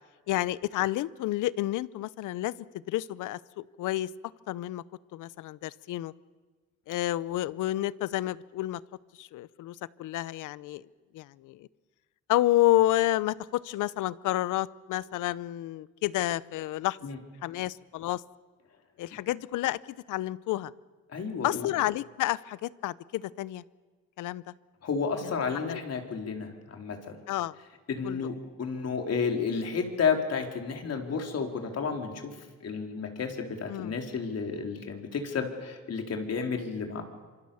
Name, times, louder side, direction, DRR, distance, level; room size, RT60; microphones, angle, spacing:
voice 1, 0.3-2.5 2.9-4.1 4.5-4.8 5.1-6.1 6.9-8.8 9.2-10.8 11.1-11.7 12.3-17.0 17.4-18.2 19.0-19.8 20.1-20.7 21.4-23.6 24.2-24.4 25.6-25.8 27.3-27.6 28.0-28.3 33.7-33.9, left 15 dB, 85° left, 19 dB, 0.7 m, -30 dB
voice 2, 21.1-21.7 24.8-27.1 27.9-32.3 32.6-37.0, left 5 dB, 55° left, 4 dB, 4.0 m, -31 dB
26.5 x 25.0 x 7.1 m, 1.4 s
cardioid pair, 90°, 30 cm